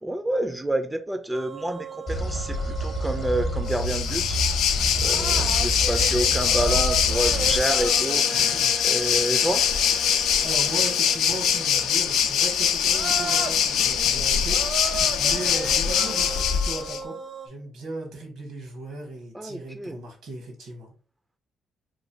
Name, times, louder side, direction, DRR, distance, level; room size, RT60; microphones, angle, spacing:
voice 1, 0.0-4.4 5.0-8.3 8.8-9.7 19.3-20.1, right 1 dB, 10° right, 0.3 m, -28 dB
sound 1, 1.3-4.0 4.3-4.5 4.9-12.0 12.5-12.6 12.8-17.5, right 4 dB, 55° right, 0.5 m, -36 dB
sound 2, 2.1-7.6, right 1 dB, 50° left, 0.7 m, -29 dB
Waves surf, 3.7-17.0, left 8 dB, 85° left, 0.3 m, -23 dB
voice 2, 8.3-8.9 10.4-17.2 17.4-20.9, right 2 dB, 85° right, 1.1 m, -37 dB
3.0 x 2.5 x 2.7 m
cardioid pair, 90°, 0 cm